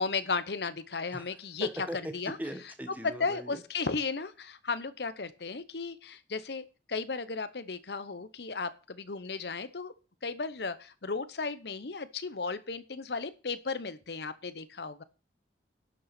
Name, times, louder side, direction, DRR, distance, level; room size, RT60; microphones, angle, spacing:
voice 1, 0.0-2.4 3.0-9.9 10.2-15.0, left 4 dB, 70° left, 14 dB, 0.9 m, -35 dB
voice 2, 1.1-2.0 2.4-3.6, equal, 10° right, 6 dB, 1.4 m, -40 dB
11.5 x 6.7 x 6.0 m, 0.34 s
head